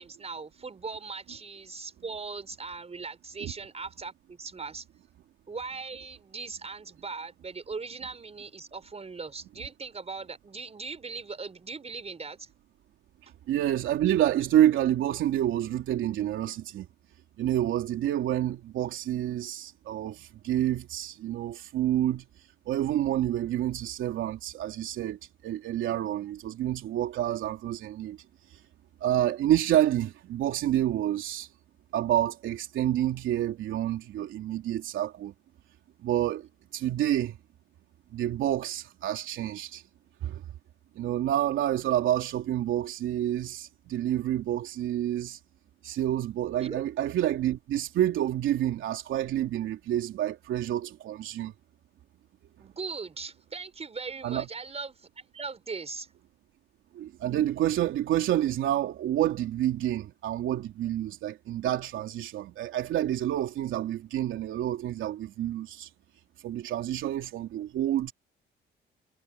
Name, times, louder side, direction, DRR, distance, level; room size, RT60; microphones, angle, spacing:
voice 1, 0.0-4.8 5.5-12.5 46.6-46.8 52.6-56.1, right 4 dB, 30° right, 5.9 m, -39 dB
voice 2, 13.5-16.9 17.4-22.2 22.7-28.2 29.0-31.5 31.9-35.3 36.0-36.5 36.7-37.4 38.1-39.8 40.2-40.4 40.9-45.4 45.8-51.5 54.2-54.5 56.9-65.9 66.4-68.1, right 12 dB, 80° right, 3.2 m, -28 dB
cardioid pair, 90°, 20 cm